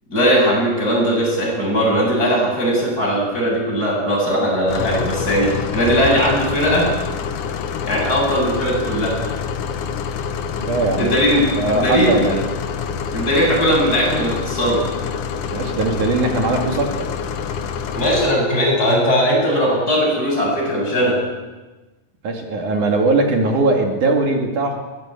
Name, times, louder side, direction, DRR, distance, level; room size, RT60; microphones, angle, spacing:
voice 1, 0.1-6.9 7.8-9.2 11.0-12.2 13.1-14.8 17.9-21.2, equal, 25° left, -2 dB, 8.6 m, -18 dB
sound 1, 4.7-18.3, left 6 dB, 70° left, 2.7 m, -26 dB
voice 2, 10.6-11.1 11.6-12.4 15.5-17.1 22.2-24.8, right 2 dB, 65° right, 2 dB, 3.8 m, -20 dB
22.5 x 19.0 x 8.9 m, 1.2 s
omnidirectional pair, 3.9 m